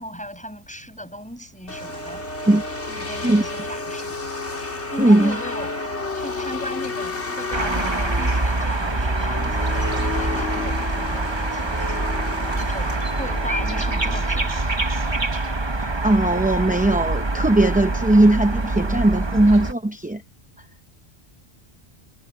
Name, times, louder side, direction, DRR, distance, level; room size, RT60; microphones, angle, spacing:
voice 1, 0.0-2.2 2.9-4.2 4.9-5.7 6.1-12.0 12.5-14.5, equal, 5° left, 5.6 m, -37 dB
sound 1, 1.7-14.7, left 3 dB, 85° left, 3.8 m, -31 dB
voice 2, 5.0-5.4 15.8-20.2, right 1 dB, 10° right, 0.5 m, -18 dB
sound 2, 7.5-19.7, right 2 dB, 25° right, 1.1 m, -25 dB
sound 3, 8.1-12.3, right 1 dB, 50° right, 6.7 m, -48 dB
omnidirectional pair, 1.1 m